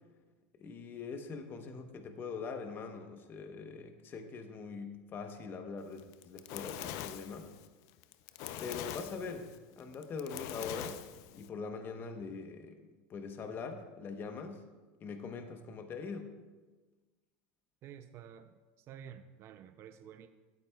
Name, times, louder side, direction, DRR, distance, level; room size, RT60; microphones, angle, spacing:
voice 1, 0.6-7.5 8.6-11.0 11.3-12.8 13.1-14.6 15.0-16.3, left 5 dB, 35° left, 6 dB, 0.9 m, -42 dB
Fire, 6.0-11.5, left 11 dB, 60° left, 0.5 m, -43 dB
voice 2, 17.8-20.3, right 9 dB, 45° right, 8 dB, 0.5 m, -51 dB
16.5 x 8.6 x 2.3 m, 1.3 s
supercardioid pair, 110°, 6 cm